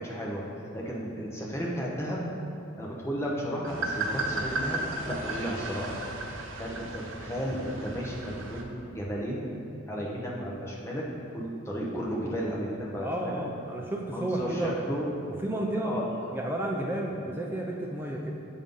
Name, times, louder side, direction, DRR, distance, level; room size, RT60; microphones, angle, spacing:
voice 1, 0.0-2.2 2.8-6.0 6.6-9.4 9.9-11.0 11.3-13.4 14.1-15.1 15.8-16.1, equal, 15° left, -4 dB, 0.8 m, -34 dB
sound 1, 3.6-8.6, right 2 dB, 75° right, 0.7 m, -35 dB
voice 2, 13.0-14.8 15.4-16.0 16.3-18.3, right 1 dB, 10° right, -1 dB, 0.5 m, -31 dB
7.4 x 5.4 x 3.7 m, 2.6 s
head